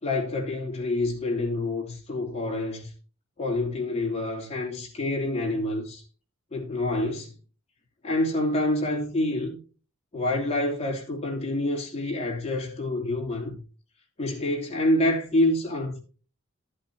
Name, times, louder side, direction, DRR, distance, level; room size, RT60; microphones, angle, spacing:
voice 1, 0.0-2.9 3.4-6.0 6.5-7.3 8.0-9.6 10.1-13.6 14.2-16.0, left 1 dB, 30° left, 3.1 m, -27 dB
13.5 x 8.7 x 2.8 m
head